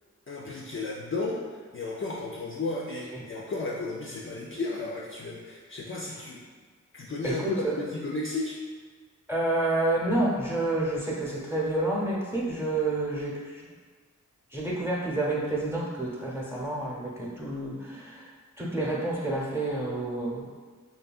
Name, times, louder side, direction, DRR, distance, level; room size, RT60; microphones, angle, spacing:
voice 1, 0.3-6.4 6.9-8.6, left 3 dB, 40° left, -3 dB, 0.4 m, -34 dB
voice 2, 7.2-7.7 9.3-13.7 14.5-18.3 18.6-20.5, right 2 dB, 10° right, -5 dB, 0.8 m, -29 dB
2.7 x 2.7 x 2.3 m, 1.5 s
cardioid pair, 40°, 33 cm